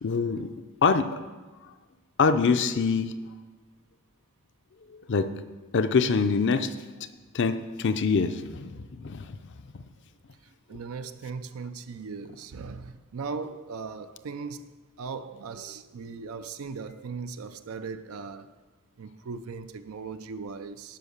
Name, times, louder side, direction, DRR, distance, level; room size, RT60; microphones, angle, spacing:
voice 1, 0.0-0.5 0.8-1.1 2.2-3.1 5.1-5.3 5.7-6.7 7.3-9.4 9.7-9.8, left 5 dB, 55° left, 0.5 m, -24 dB
voice 2, 10.7-18.5 19.0-21.0, right 5 dB, 75° right, 0.4 m, -38 dB
10.5 x 5.3 x 6.5 m
head